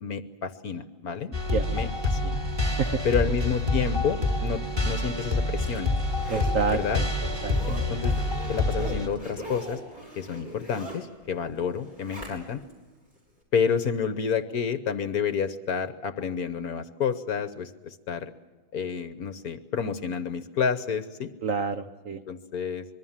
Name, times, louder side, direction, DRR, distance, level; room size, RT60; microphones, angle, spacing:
voice 1, 0.0-1.3 1.7-2.4 3.0-5.9 6.7-7.0 7.7-8.1 8.5-9.8 10.2-12.6 13.5-18.3 18.7-21.3 22.3-22.9, left 6 dB, 55° left, 11 dB, 1.3 m, -29 dB
sound 1, 1.3-9.1, left 2 dB, 10° right, 3.5 m, -27 dB
voice 2, 2.6-3.0 6.3-7.1 7.4-7.6 21.4-22.2, right 5 dB, 50° right, 8 dB, 1.2 m, -28 dB
Zipper (clothing), 5.1-12.7 13.1-13.2, equal, 30° right, 7.4 m, -42 dB
26.0 x 22.5 x 7.4 m, 1.2 s
omnidirectional pair, 2.1 m